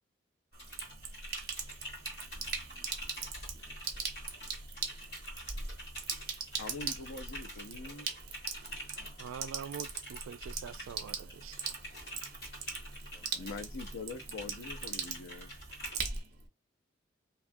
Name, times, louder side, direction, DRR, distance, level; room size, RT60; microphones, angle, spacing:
Typing, 0.5-16.2, equal, 50° left, 1.8 m, -46 dB
Sink (filling or washing), 0.5-16.5, right 6 dB, 50° right, 0.7 m, -41 dB
voice 1, 2.0-4.1 10.9-11.4 13.0-14.4, right 1 dB, ahead, 1.0 m, -66 dB
voice 2, 6.6-8.1 13.4-15.5, left 3 dB, 85° left, 0.6 m, -43 dB
voice 3, 9.2-11.7, right 8 dB, 85° right, 0.3 m, -44 dB
2.9 x 2.4 x 2.5 m
head